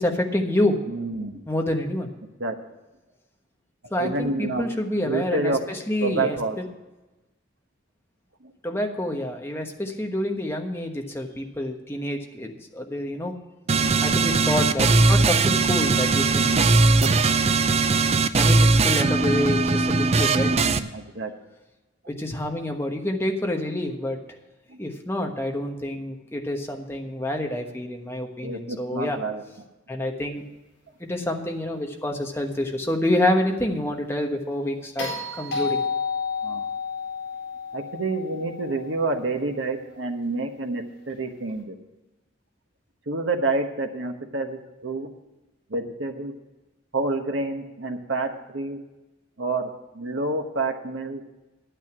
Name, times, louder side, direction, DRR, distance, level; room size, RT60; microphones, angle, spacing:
voice 1, 0.0-0.8 1.5-2.1 3.9-6.7 8.6-13.4 14.0-16.5 18.4-20.5 22.1-24.2 24.8-29.2 29.9-30.4 31.0-35.8, left 1 dB, 10° left, 2 dB, 1.2 m, -27 dB
voice 2, 0.9-1.4 2.4-2.6 3.9-4.7 5.0-5.6 6.0-6.6 8.4-8.5 13.7-14.0 16.3-16.8 20.4-21.3 24.7-24.8 28.4-29.4 36.4-36.7 37.7-41.8 43.1-45.1 45.7-46.3 46.9-48.8 49.4-51.2, right 3 dB, 70° right, 3 dB, 1.2 m, -28 dB
sound 1, 13.7-20.8, right 3 dB, 30° right, 0.5 m, -19 dB
sound 2, 35.0-39.3 41.5-41.6, left 5 dB, 55° left, 4.7 m, -31 dB
10.5 x 9.1 x 6.0 m, 1.1 s
head